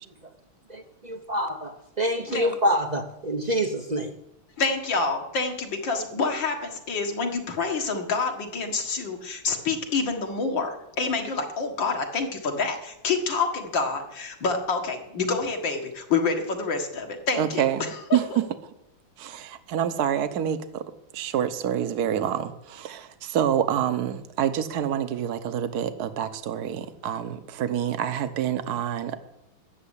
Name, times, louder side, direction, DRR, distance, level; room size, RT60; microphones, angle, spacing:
voice 1, 1.1-4.1, equal, 40° right, 7 dB, 0.6 m, -26 dB
voice 2, 4.6-17.6, left 4 dB, 70° left, 3 dB, 2.5 m, -27 dB
voice 3, 17.4-18.4 19.2-20.8 21.1-29.2, right 9 dB, 55° right, 11 dB, 1.4 m, -27 dB
14.0 x 7.5 x 10.0 m, 0.87 s
omnidirectional pair, 2.1 m